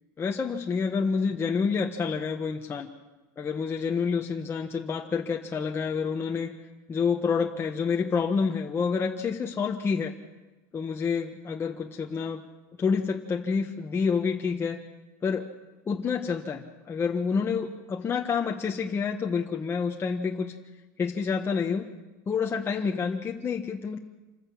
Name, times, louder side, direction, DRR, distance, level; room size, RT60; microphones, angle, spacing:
voice 1, 0.2-2.9 3.4-6.5 6.9-10.1 10.7-12.4 12.8-14.8 15.2-15.5 15.9-20.5 21.0-21.9 22.3-24.0, left 5 dB, 25° left, 1 dB, 1.3 m, -28 dB
27.0 x 14.5 x 8.7 m, 1.1 s
supercardioid pair, 125°, 10 cm